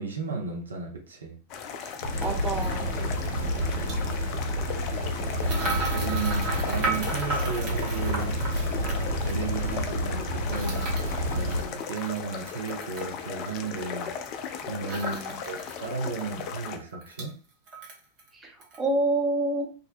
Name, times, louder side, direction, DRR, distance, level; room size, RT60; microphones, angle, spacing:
voice 1, 0.0-1.4 3.3-4.2 5.2-8.4 8.8-10.9 11.3-14.1 14.7-17.3, right 4 dB, 70° right, 1 dB, 0.5 m, -35 dB
sound 1, 1.5-16.8, left 7 dB, 40° left, 0.3 m, -37 dB
sound 2, 1.8-1.9 2.6-2.8 3.7-4.0 5.4-9.4 10.5-13.1 14.9-15.9 16.2-16.3 16.6-17.3 17.7-18.3 18.6-18.8, right 2 dB, 40° right, 0.8 m, -34 dB
sound 3, 2.0-11.6, equal, 90° left, 0.7 m, -29 dB
voice 2, 2.2-2.9 15.0-15.4 18.3-19.7, right 2 dB, 15° right, 0 dB, 0.7 m, -28 dB
2.5 x 2.1 x 2.5 m, 0.37 s
figure-of-eight pair, 90°, 0 cm